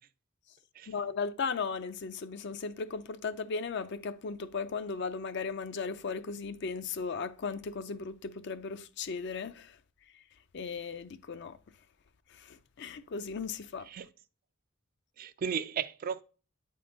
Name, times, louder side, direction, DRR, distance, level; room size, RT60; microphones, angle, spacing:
voice 1, 0.9-9.8 10.5-11.6 12.3-13.9, left 5 dB, 55° left, 0.4 m, -36 dB
voice 2, 15.2-16.2, right 7 dB, 45° right, 0.3 m, -35 dB
8.5 x 3.8 x 3.9 m
head